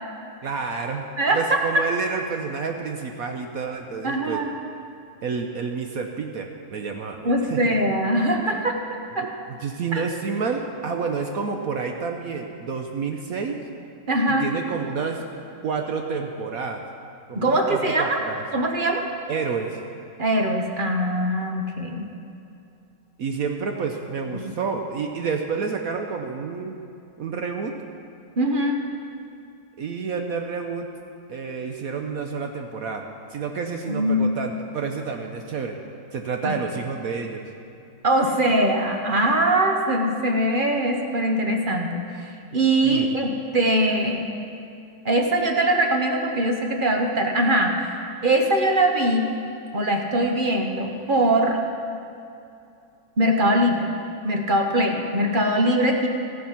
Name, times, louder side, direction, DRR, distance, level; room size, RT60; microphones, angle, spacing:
voice 1, 0.4-1.1 1.3-4.4 5.2-7.6 9.5-13.6 14.3-15.2 15.6-16.8 17.3-18.4 19.3-19.8 23.2-26.8 27.2-27.8 29.8-30.9 31.3-35.8 36.1-37.4 42.8-43.1, right 5 dB, 60° right, 3 dB, 1.0 m, -29 dB
voice 2, 1.2-1.8 4.0-4.5 7.2-8.8 9.1-9.3 9.9-10.0 14.1-14.5 17.3-18.2 18.5-19.0 20.2-22.1 24.3-24.4 28.4-28.8 33.9-34.3 36.4-36.5 38.0-42.0 42.5-44.3 45.0-47.9 48.2-49.4 49.7-51.6 53.2-53.9 54.2-56.1, right 1 dB, 40° right, 2 dB, 0.8 m, -22 dB
14.5 x 9.2 x 5.8 m, 2.6 s
omnidirectional pair, 1.9 m